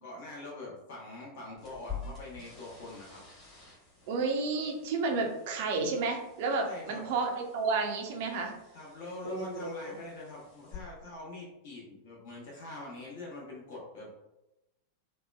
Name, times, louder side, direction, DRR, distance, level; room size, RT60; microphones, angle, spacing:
voice 1, 0.0-3.2 6.6-7.0 8.7-14.1, left 2 dB, 50° left, -4 dB, 0.8 m, -44 dB
sound 1, 1.6-10.7, left 6 dB, 30° left, 1.1 m, -49 dB
voice 2, 4.1-8.5 9.2-9.7, right 4 dB, 50° right, 2 dB, 0.5 m, -31 dB
2.8 x 2.2 x 2.2 m, 0.94 s
figure-of-eight pair, 90°, 0 cm